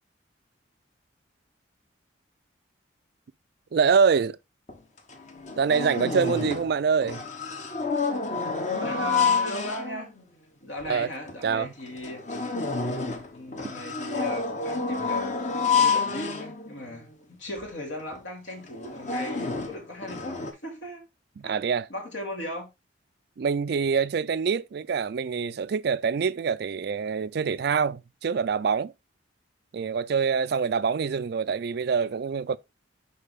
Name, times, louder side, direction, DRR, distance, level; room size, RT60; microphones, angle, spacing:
voice 1, 3.7-4.4 5.6-7.2 10.9-11.1 11.4-11.7 21.4-21.9 23.4-28.9 29.7-32.6, right 6 dB, 55° right, 0.4 m, -25 dB
sound 1, 4.7-4.8 5.1-6.8 7.0-10.2 10.8-10.9 11.3-11.4 11.9-17.0 17.6-17.7 18.0-18.2 18.7-20.5, left 5 dB, 40° left, 1.0 m, -29 dB
voice 2, 8.8-10.1 10.6-12.2 13.3-21.1 21.4-22.7, left 1 dB, 75° left, 2.5 m, -37 dB
6.6 x 5.0 x 3.5 m
head